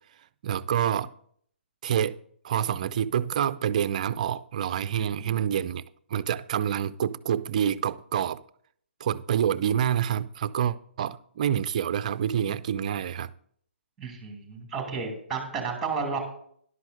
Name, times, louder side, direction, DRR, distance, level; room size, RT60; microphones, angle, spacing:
voice 1, 0.4-1.1 1.8-2.2 2.4-5.8 6.1-8.4 9.0-13.3, right 9 dB, 40° right, 0.4 m, -27 dB
voice 2, 5.0-5.4 14.0-16.2, right 5 dB, 5° right, 2.5 m, -32 dB
13.0 x 11.5 x 2.7 m
figure-of-eight pair, 135°, 6 cm